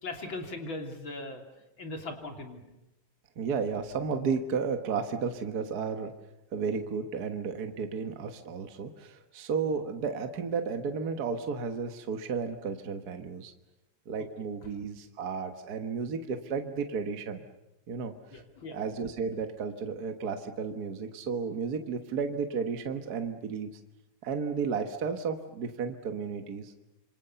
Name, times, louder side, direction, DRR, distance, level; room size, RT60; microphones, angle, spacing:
voice 1, 0.0-1.4 1.8-2.6 14.2-14.3 18.3-18.8, left 2 dB, 40° left, 3 dB, 3.8 m, -39 dB
voice 2, 3.4-6.1 6.5-13.5 14.1-17.4 17.9-18.4 18.7-23.7 24.2-26.7, right 5 dB, 50° right, 6 dB, 1.2 m, -33 dB
27.0 x 26.0 x 6.9 m, 0.95 s
omnidirectional pair, 3.5 m